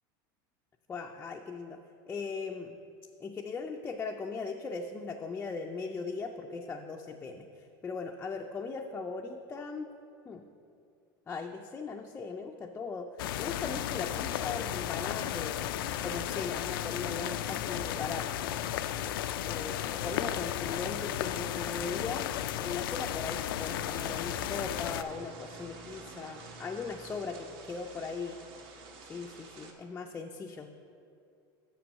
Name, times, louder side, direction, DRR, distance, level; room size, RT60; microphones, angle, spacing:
voice 1, 0.9-1.8 2.1-2.8 3.2-9.9 10.3-10.4 11.3-13.1 13.4-15.7 16.0-18.3 19.4-22.3 22.6-28.4 29.1-30.7, left 4 dB, 15° left, 2 dB, 0.4 m, -39 dB
sound 1, 13.2-25.0, left 11 dB, 90° left, 0.4 m, -34 dB
sound 2, 23.6-29.7, right 3 dB, 50° right, 1.1 m, -49 dB
6.7 x 6.0 x 6.2 m, 2.5 s
supercardioid pair, 135°, 11 cm